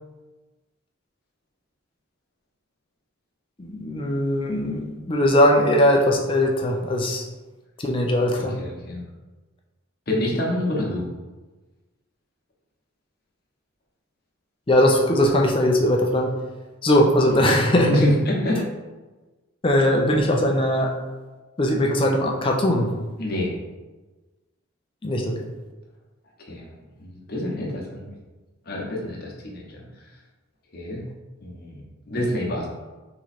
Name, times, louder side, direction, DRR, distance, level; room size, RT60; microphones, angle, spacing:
voice 1, 3.6-7.3 7.8-8.6 14.7-16.3 16.8-18.0 19.6-20.9 21.6-22.9 25.0-25.4, left 1 dB, 25° left, 1 dB, 0.5 m, -20 dB
voice 2, 8.3-9.0 10.1-11.1 17.3-17.5 17.9-18.6 23.2-23.5 26.5-26.7 27.0-28.1 28.7-29.8 30.7-31.0 31.4-32.7, left 1 dB, 45° left, -3 dB, 1.0 m, -27 dB
3.8 x 3.0 x 4.3 m, 1.2 s
head